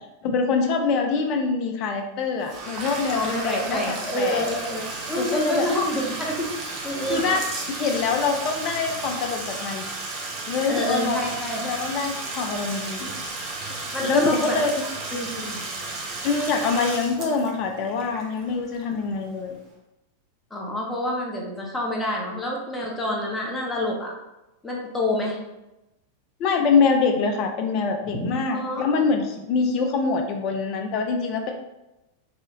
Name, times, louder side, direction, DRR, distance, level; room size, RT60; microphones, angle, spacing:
voice 1, 0.2-4.5 5.2-5.7 7.1-7.4 7.7-9.8 10.5-11.2 11.6-13.1 14.0-14.9 16.2-19.6 26.4-31.5, left 4 dB, 40° left, 3 dB, 0.3 m, -24 dB
Bathtub (filling or washing), 2.4-19.1, right 3 dB, 35° right, 0.5 m, -33 dB
voice 2, 3.1-6.5 6.8-7.2 10.7-11.6 13.9-14.6 15.1-15.6 20.5-24.1 24.6-25.4 28.1-28.9, left 1 dB, 10° left, -2 dB, 0.7 m, -28 dB
2.7 x 2.3 x 2.7 m, 0.95 s
figure-of-eight pair, 90°, 0 cm